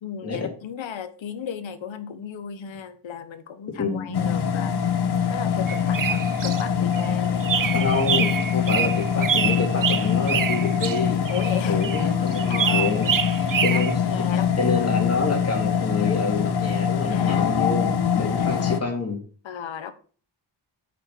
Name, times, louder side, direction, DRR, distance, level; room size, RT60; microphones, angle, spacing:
voice 1, 0.0-4.8 5.3-7.8 11.3-12.2 12.5-12.9 13.6-14.9 17.1-17.6 18.4-18.5 19.4-19.9, left 8 dB, 85° left, 1.3 m, -35 dB
voice 2, 3.8-4.3 7.7-11.3 11.7-13.1 13.6-13.9 14.6-19.2, left 3 dB, 30° left, 3.7 m, -27 dB
sound 1, 4.1-18.8, left 7 dB, 60° left, 1.1 m, -24 dB
sound 2, 5.7-6.6 6.9-7.1 7.4-13.9, right 8 dB, 45° right, 0.8 m, -26 dB
8.3 x 6.8 x 6.1 m
wide cardioid pair, 130°, 45 cm